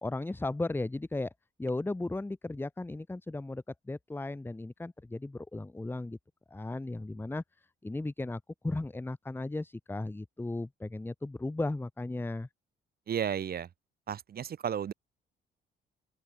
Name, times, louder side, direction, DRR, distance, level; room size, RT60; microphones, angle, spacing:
voice 1, 0.0-1.3 1.6-6.2 6.5-12.5, left 2 dB, 10° left, 0.9 m, -36 dB
voice 2, 13.1-13.7 14.1-14.9, right 8 dB, 50° right, 1.2 m, -33 dB
open air
cardioid pair, 90°, 20 cm